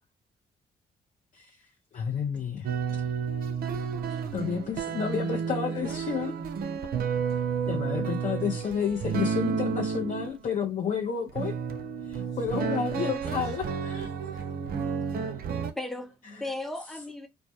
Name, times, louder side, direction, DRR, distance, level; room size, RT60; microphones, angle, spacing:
voice 1, 1.9-2.7 4.1-6.3 7.7-11.5 12.1-14.1, left 7 dB, 45° left, 0.5 m, -31 dB
sound 1, 2.6-10.5 11.3-15.7, right 6 dB, 55° right, 0.5 m, -31 dB
voice 2, 4.3-7.6 7.9-8.1 12.2-12.6 13.0-13.4 13.8-15.8, left 3 dB, 70° left, 0.9 m, -57 dB
voice 3, 7.8-8.2 12.0-12.3 15.7-17.3, left 2 dB, ahead, 0.7 m, -37 dB
2.1 x 2.1 x 2.8 m
hypercardioid pair, 45°, 19 cm